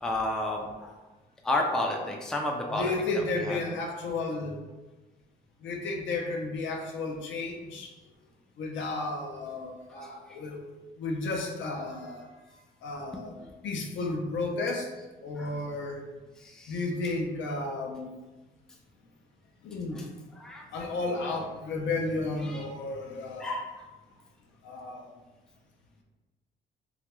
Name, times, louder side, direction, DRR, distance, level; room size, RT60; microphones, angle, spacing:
voice 1, 0.0-0.9 1.4-3.6 15.4-15.5 16.4-16.9 20.0-20.1 20.3-20.9 22.4-22.7 23.4-23.7, left 1 dB, 5° left, 0 dB, 0.3 m, -32 dB
voice 2, 2.6-4.6 5.6-7.9 8.6-10.6 11.0-12.3 12.8-13.3 13.6-14.9 15.2-16.0 16.7-18.1 19.6-20.1 20.7-23.5 24.6-25.0, left 3 dB, 70° left, 2 dB, 0.5 m, -33 dB
2.3 x 2.1 x 2.9 m, 1.2 s
cardioid pair, 90°, 20 cm